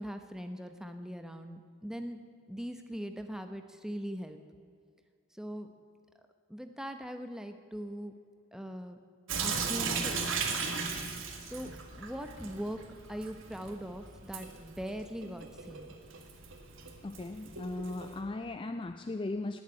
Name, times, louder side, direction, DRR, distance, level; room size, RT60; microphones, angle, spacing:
voice 1, 0.0-2.2 2.5-4.4 5.3-5.7 6.5-8.1 8.5-9.0 9.4-10.6 11.4-12.8 13.1-15.9, equal, ahead, 0.8 m, -41 dB
Sink (filling or washing) / Drip, 9.3-18.2, right 5 dB, 60° right, 1.8 m, -37 dB
voice 2, 17.0-19.6, left 2 dB, 20° left, 0.3 m, -37 dB
18.5 x 7.4 x 9.7 m
head